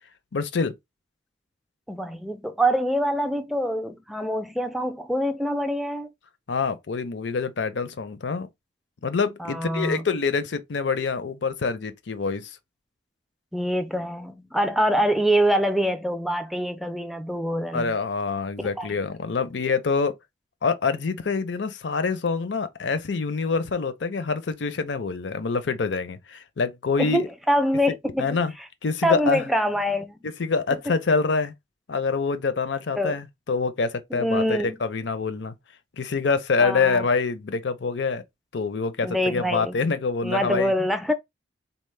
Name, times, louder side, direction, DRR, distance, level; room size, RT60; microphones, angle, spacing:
voice 1, 0.3-0.7 6.5-8.5 9.0-12.6 17.7-20.1 20.6-27.3 28.2-28.5 28.8-29.4 30.2-31.5 31.9-35.5 36.0-38.2 38.5-40.7, left 4 dB, 70° left, 0.6 m, -26 dB
voice 2, 1.9-6.1 9.4-10.0 13.5-17.9 18.6-18.9 27.0-28.4 29.0-30.2 33.0-33.2 34.1-34.8 36.6-37.1 39.0-39.8 40.2-41.1, equal, ahead, 0.4 m, -25 dB
4.1 x 2.1 x 3.2 m
head